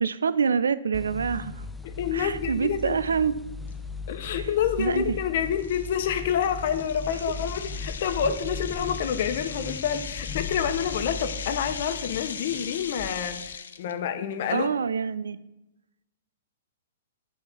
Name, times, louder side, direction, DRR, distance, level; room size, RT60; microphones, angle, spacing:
voice 1, 0.0-1.5 2.1-3.4 4.3-4.5 4.8-5.0 7.1-7.2 14.5-15.4, right 6 dB, 85° right, 16 dB, 0.4 m, -26 dB
sound 1, 0.9-13.6, left 4 dB, 5° left, 0.4 m, -38 dB
voice 2, 1.8-3.0 4.1-14.7, left 8 dB, 55° left, 8 dB, 0.9 m, -28 dB
sound 2, 3.7-3.8 4.3-4.5 5.0-5.1 5.6-13.9, left 7 dB, 75° left, 0.5 m, -38 dB
7.9 x 3.5 x 6.1 m, 0.92 s
hypercardioid pair, 130°, 0 cm